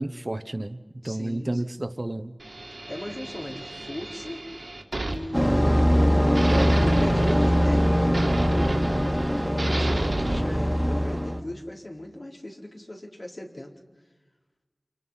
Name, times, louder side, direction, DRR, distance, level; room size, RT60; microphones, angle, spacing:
voice 1, 0.0-2.4 6.5-6.8, right 1 dB, 50° right, 10 dB, 1.1 m, -31 dB
voice 2, 1.0-1.6 2.9-4.7 5.1-5.9 6.5-6.6 7.0-13.7, left 1 dB, 60° left, -1 dB, 4.3 m, -39 dB
sound 1, 2.4-6.0 6.3-10.4, right 2 dB, 85° right, 2.7 m, -32 dB
sound 2, 5.3-11.4, equal, 5° left, 2.1 m, -22 dB
29.0 x 28.0 x 5.7 m, 1.2 s
wide cardioid pair, 40°, 0 cm